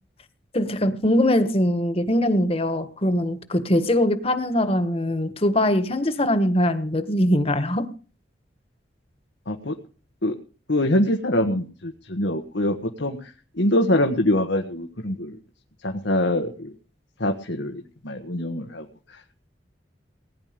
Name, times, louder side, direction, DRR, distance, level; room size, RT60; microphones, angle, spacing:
voice 1, 0.5-7.9, left 1 dB, 35° left, 1.5 m, -22 dB
voice 2, 10.7-15.4 15.8-16.7 17.2-18.9, left 1 dB, 90° left, 1.6 m, -24 dB
19.5 x 10.5 x 5.2 m
head